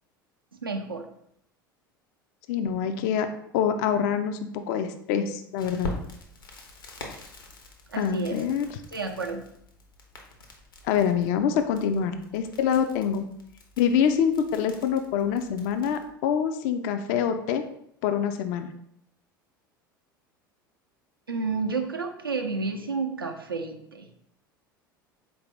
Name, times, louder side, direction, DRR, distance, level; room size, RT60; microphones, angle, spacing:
voice 1, 0.6-1.1 7.9-8.4 8.9-9.4 21.3-24.1, right 4 dB, 85° right, 4 dB, 0.5 m, -30 dB
voice 2, 2.5-3.3 3.5-5.9 8.0-8.7 10.8-13.2 13.8-17.6 18.0-18.7, left 8 dB, 55° left, 8 dB, 0.4 m, -25 dB
Crackle, 5.6-16.1, left 2 dB, 75° left, 0.7 m, -44 dB
4.2 x 2.6 x 3.3 m, 0.73 s
figure-of-eight pair, 75°, 11 cm